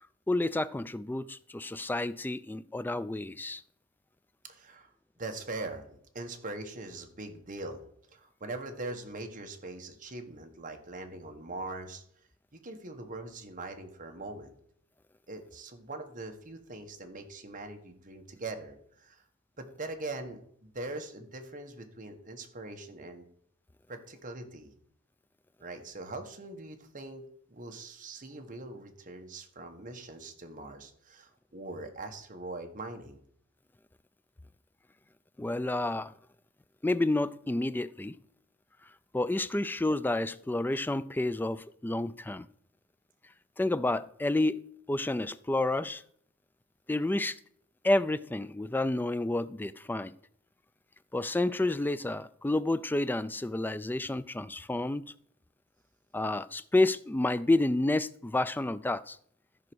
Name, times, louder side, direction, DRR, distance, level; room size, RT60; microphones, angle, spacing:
voice 1, 0.3-3.6 35.4-36.1 36.8-38.2 39.1-42.5 43.6-46.0 46.9-47.4 47.8-50.1 51.1-55.1 56.1-59.2, left 2 dB, 10° left, 0.3 m, -30 dB
voice 2, 4.4-4.9 5.2-7.8 8.1-12.0 12.6-14.5 15.3-19.2 19.6-23.3 23.9-24.7 25.6-27.2 27.5-33.2, right 2 dB, 40° right, 1.5 m, -42 dB
13.5 x 4.9 x 6.2 m
head